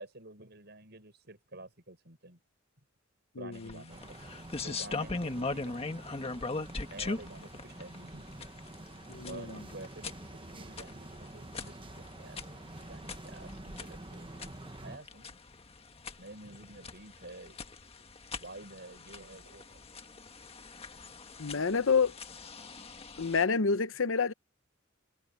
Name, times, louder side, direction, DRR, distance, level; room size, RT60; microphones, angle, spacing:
voice 1, 0.0-2.4 3.4-4.3 4.6-6.1 6.9-8.3 9.3-14.2 14.8-15.4 16.2-17.6 18.4-19.8, right 2 dB, 55° right, 7.5 m, -49 dB
voice 2, 3.4-3.7 9.1-9.6 21.4-22.1 23.2-24.3, left 5 dB, 75° left, 0.9 m, -28 dB
sound 1, 3.5-23.4, left 3 dB, 30° left, 1.6 m, -41 dB
sound 2, 3.9-15.0, right 2 dB, 25° right, 1.2 m, -48 dB
head